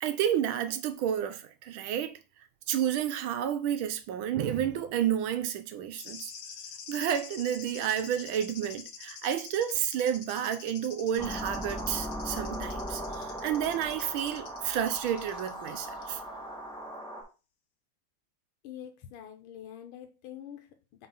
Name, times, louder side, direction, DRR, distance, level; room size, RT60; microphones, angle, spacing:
voice 1, 0.0-2.2 2.7-6.3 6.9-16.2, right 10 dB, 75° right, 1.4 m, -30 dB
sound 1, 5.9-15.7 16.0-16.1, left 7 dB, 60° left, 1.2 m, -46 dB
sound 2, 11.2-17.2, equal, ahead, 1.5 m, -38 dB
voice 2, 18.6-21.1, left 10 dB, 75° left, 1.6 m, -46 dB
4.3 x 4.2 x 5.4 m
omnidirectional pair, 2.4 m